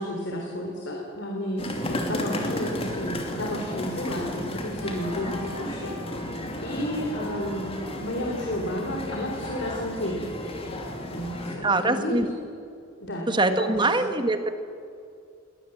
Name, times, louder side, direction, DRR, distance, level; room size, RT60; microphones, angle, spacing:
voice 1, 0.0-6.3 6.6-10.3 11.1-12.2 13.0-13.7 14.0-14.1, equal, 60° left, 0 dB, 3.4 m, -32 dB
sound 1, 1.6-11.6, left 1 dB, 30° left, 2.8 m, -33 dB
Piano, 4.8-7.2, left 1 dB, 90° left, 2.1 m, -44 dB
voice 2, 11.6-12.3 13.3-14.6, right 2 dB, 20° right, 8 dB, 1.5 m, -24 dB
22.5 x 19.0 x 7.8 m, 2.4 s
head